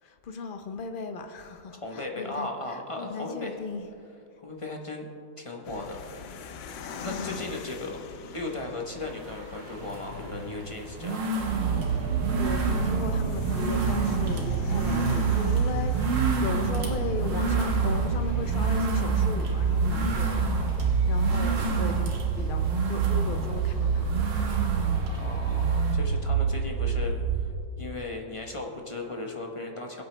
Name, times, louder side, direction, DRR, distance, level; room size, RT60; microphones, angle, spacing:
voice 1, 0.0-2.5 3.0-3.9 7.0-7.4 12.0-24.1, left 4 dB, 65° left, 6 dB, 0.5 m, -36 dB
voice 2, 1.8-3.6 4.4-5.1 5.4-6.0 7.0-8.0 8.3-11.3 25.0-30.0, left 2 dB, 25° left, 1 dB, 0.8 m, -36 dB
sound 1, 5.6-21.1, left 7 dB, 85° left, 1.5 m, -44 dB
sound 2, 9.0-26.0, right 3 dB, 85° right, 2.0 m, -32 dB
sound 3, 11.4-27.6, right 6 dB, 65° right, 1.2 m, -27 dB
22.5 x 8.1 x 3.3 m, 2.5 s
omnidirectional pair, 1.9 m